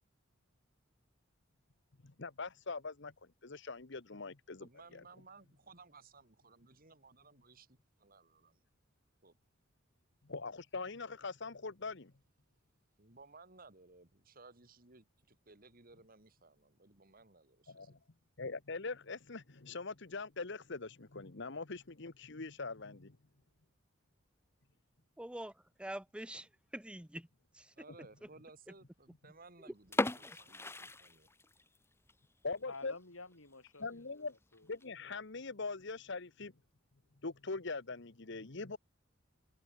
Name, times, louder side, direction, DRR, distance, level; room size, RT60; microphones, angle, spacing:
voice 1, 2.0-3.1 3.4-5.0 10.3-12.1 17.7-18.0 18.4-23.2 32.4-32.9 33.8-34.3 34.7-36.5 37.2-38.8, left 3 dB, 60° left, 1.2 m, -42 dB
voice 2, 4.6-8.6 9.2-9.4 13.0-18.0 27.8-31.3, right 3 dB, 45° right, 2.8 m, -59 dB
voice 3, 25.2-25.5 25.8-27.3 27.5-27.7 29.7-29.8 30.2-30.4, right 1 dB, 5° right, 0.6 m, -45 dB
sound 1, 29.8-31.8 32.1-32.2 32.7-32.9 33.3-33.4 33.7-33.8 34.5-34.8, left 2 dB, 10° left, 1.3 m, -37 dB
voice 4, 32.7-34.7, left 3 dB, 85° left, 5.9 m, -52 dB
head